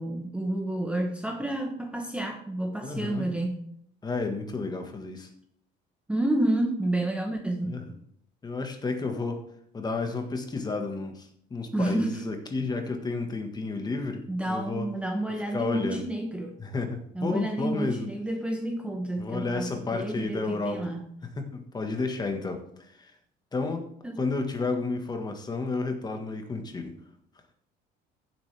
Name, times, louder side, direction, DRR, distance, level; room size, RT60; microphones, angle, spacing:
voice 1, 0.0-3.6 6.1-7.8 11.7-12.2 14.3-16.6 17.1-21.1 24.0-24.2, right 1 dB, 5° right, 3 dB, 1.0 m, -30 dB
voice 2, 2.8-3.3 4.0-5.3 7.6-7.9 8.4-9.4 9.7-14.9 15.5-16.1 16.6-18.1 19.2-20.9 21.4-22.6 23.0-23.1 23.5-23.8 24.2-26.9, left 3 dB, 20° left, 5 dB, 1.5 m, -31 dB
15.0 x 7.6 x 3.4 m, 0.68 s
cardioid pair, 140°, 19 cm